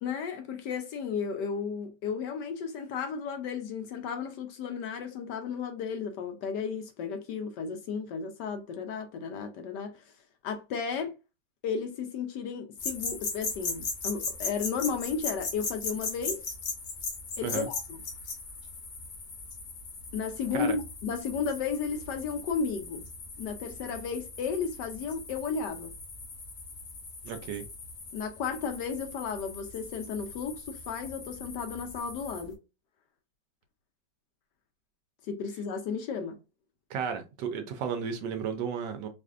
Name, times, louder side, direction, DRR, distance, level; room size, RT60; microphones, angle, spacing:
voice 1, 0.0-10.0 10.4-11.1 11.6-16.4 17.4-18.0 20.1-23.0 23.4-25.9 28.1-32.6 35.3-36.4, left 6 dB, 70° left, 1.1 m, -34 dB
sound 1, 12.8-32.5, left 4 dB, 90° left, 1.9 m, -39 dB
voice 2, 27.2-27.7 36.9-39.1, right 7 dB, 70° right, 1.2 m, -33 dB
4.7 x 2.5 x 2.4 m
omnidirectional pair, 2.1 m